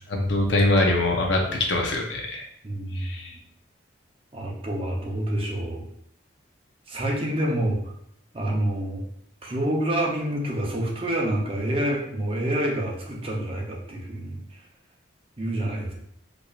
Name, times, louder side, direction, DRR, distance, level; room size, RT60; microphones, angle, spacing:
voice 1, 0.1-2.4 2.9-3.3, left 2 dB, 70° left, 1 dB, 0.7 m, -23 dB
voice 2, 2.6-3.1 4.3-5.9 6.9-7.9 8.3-9.0 9.4-14.6 15.4-15.9, right 1 dB, 30° right, -2 dB, 0.6 m, -27 dB
4.6 x 2.6 x 2.4 m, 0.72 s
head